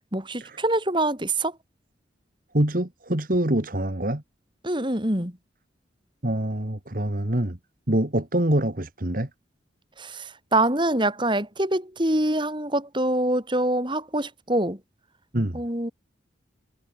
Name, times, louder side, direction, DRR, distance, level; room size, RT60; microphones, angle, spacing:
voice 1, 0.1-1.6 4.6-5.4 10.0-14.8 15.5-15.9, right 1 dB, 25° right, 5.4 m, -25 dB
voice 2, 2.5-4.2 6.2-7.6 7.9-9.3 15.3-15.6, right 1 dB, 45° right, 2.0 m, -25 dB
head